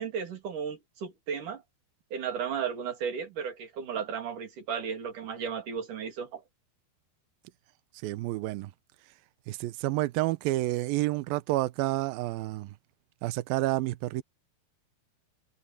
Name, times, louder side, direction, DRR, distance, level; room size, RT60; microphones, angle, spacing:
voice 1, 0.0-1.6 2.1-6.4, right 7 dB, 50° right, 4.4 m, -34 dB
voice 2, 8.0-8.7 9.5-12.7 13.2-14.2, right 17 dB, 85° right, 2.1 m, -29 dB
omnidirectional pair, 5.0 m